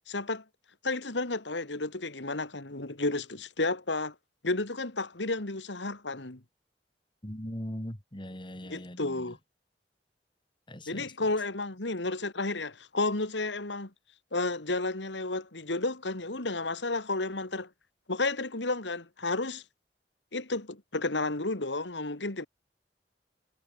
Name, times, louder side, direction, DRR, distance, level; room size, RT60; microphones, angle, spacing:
voice 1, 0.1-0.4 0.8-4.1 4.4-6.4 8.6-9.4 10.9-13.9 14.3-17.7 18.1-19.6 20.3-22.5, left 2 dB, 80° left, 2.4 m, -32 dB
voice 2, 7.2-9.3 10.7-11.1, equal, 25° left, 3.1 m, -40 dB
head